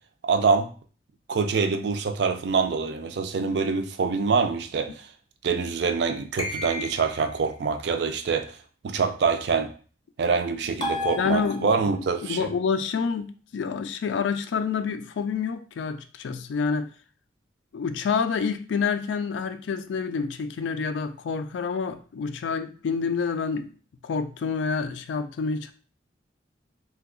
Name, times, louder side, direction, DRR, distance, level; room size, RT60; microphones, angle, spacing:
voice 1, 0.2-0.7 1.3-5.1 5.4-8.5 8.8-9.7 10.2-12.5, right 5 dB, 65° right, 8 dB, 0.4 m, -25 dB
sound 1, 6.4-7.3 10.8-12.0, left 3 dB, 25° left, 0.6 m, -32 dB
voice 2, 11.2-11.7 12.2-16.9 17.7-23.7 24.0-25.7, left 5 dB, 75° left, 10 dB, 0.3 m, -28 dB
2.7 x 2.3 x 3.6 m, 0.40 s
head